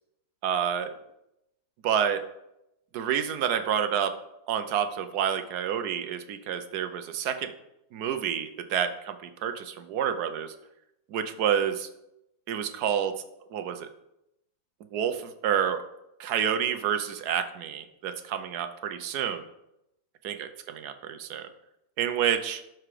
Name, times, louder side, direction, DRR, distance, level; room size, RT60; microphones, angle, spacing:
voice 1, 0.4-1.0 1.8-2.2 2.9-4.1 4.5-7.5 7.9-10.5 11.1-11.9 12.5-13.1 13.5-13.9 14.9-15.8 16.2-19.4 20.2-21.5 22.0-22.6, right 8 dB, 65° right, 9 dB, 1.2 m, -29 dB
12.5 x 4.8 x 4.9 m, 0.85 s
omnidirectional pair, 2.0 m